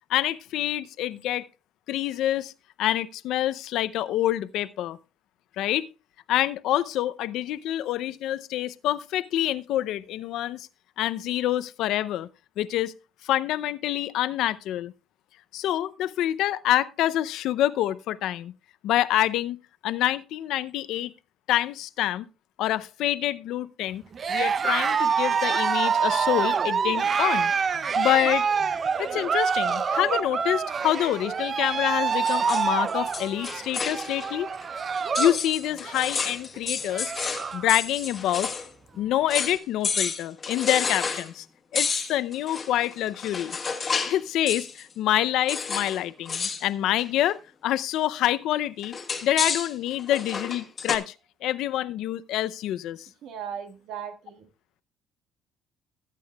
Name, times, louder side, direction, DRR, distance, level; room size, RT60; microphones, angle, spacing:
voice 1, 0.1-1.5 1.9-2.5 2.8-5.0 5.6-5.9 6.3-10.7 11.0-12.3 12.6-12.9 13.2-14.9 15.5-18.5 18.8-21.1 21.5-22.3 22.6-24.0 24.3-27.5 27.8-28.5 29.0-34.5 35.2-37.1 37.5-38.5 39.0-41.4 41.7-43.6 44.1-49.0 49.2-51.1 51.4-53.1, left 13 dB, 75° left, 0.5 m, -26 dB
Cheering, 24.1-35.4 35.7-36.1 36.6-36.7 36.8-37.7, right 6 dB, 35° right, 0.5 m, -26 dB
sound 1, 32.1-34.3 34.6-34.7 35.1-38.7 38.9-39.0 39.3-39.6 39.8-41.3 41.7-44.2 44.5-44.8 45.5-46.0 46.2-46.6 47.0-47.3 48.8-51.0, left 5 dB, 30° left, 1.4 m, -30 dB
voice 2, 53.2-54.5, right 8 dB, 70° right, 1.6 m, -37 dB
19.0 x 8.4 x 2.3 m
cardioid pair, 125°, 0 cm